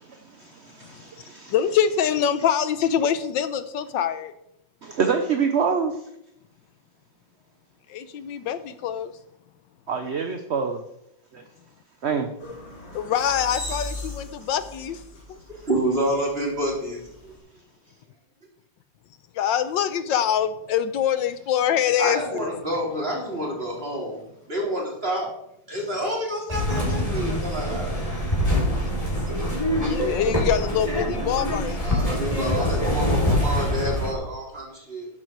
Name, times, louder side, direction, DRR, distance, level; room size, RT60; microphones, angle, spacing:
voice 1, 0.8-1.5 4.8-5.9 9.9-10.8 11.3-11.4 12.0-12.3, right 6 dB, 45° right, 6 dB, 0.9 m, -25 dB
voice 2, 1.5-4.3 7.9-9.1 12.9-15.0 15.3-15.4 19.3-22.5 29.7-32.2, left 9 dB, 75° left, 12 dB, 1.4 m, -25 dB
sound 1, 12.4-17.4, left 1 dB, 55° left, 3.5 m, -38 dB
voice 3, 15.5-17.3 22.0-24.2 24.5-25.3 25.7-28.1 31.8-35.1, equal, 30° right, -2 dB, 4.0 m, -28 dB
sound 2, 26.5-34.1, equal, 15° left, 3.2 m, -24 dB
12.0 x 10.5 x 4.7 m, 0.79 s
omnidirectional pair, 2.1 m